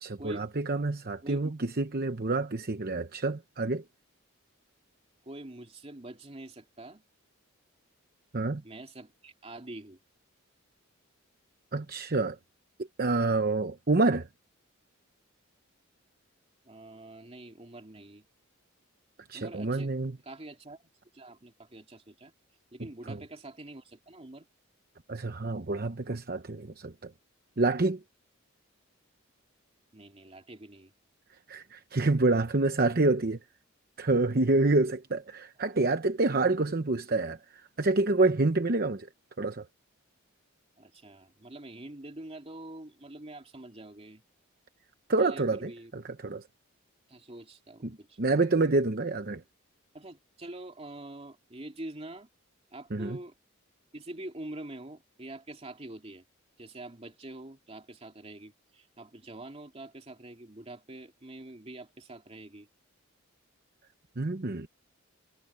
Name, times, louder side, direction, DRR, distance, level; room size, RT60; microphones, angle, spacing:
voice 1, 0.0-3.8 8.3-8.6 11.7-12.4 13.0-14.3 19.3-20.2 23.1-23.2 25.1-27.1 27.6-28.0 31.5-33.4 34.0-37.4 37.8-39.1 39.4-39.6 45.1-46.4 47.8-49.4 52.9-53.2 64.2-64.7, right 2 dB, 45° right, 0.9 m, -27 dB
voice 2, 1.2-1.5 5.2-7.0 8.6-10.0 16.7-18.2 19.3-19.9 20.2-22.3 22.7-24.5 29.9-30.9 40.8-44.2 45.2-45.9 47.1-48.2 49.9-52.3 52.7-53.3 53.9-56.2 56.6-62.7, right 1 dB, 30° right, 2.5 m, -45 dB
head